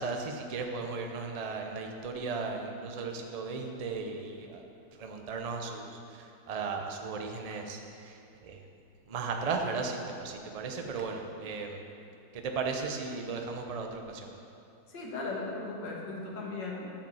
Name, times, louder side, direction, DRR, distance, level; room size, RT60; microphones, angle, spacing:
voice 1, 0.0-4.6 5.0-8.6 9.1-11.8 12.3-14.3, right 4 dB, 60° right, 3 dB, 0.4 m, -36 dB
voice 2, 14.9-16.9, left 3 dB, 80° left, -2 dB, 2.2 m, -37 dB
10.0 x 5.2 x 7.1 m, 2.6 s
omnidirectional pair, 1.9 m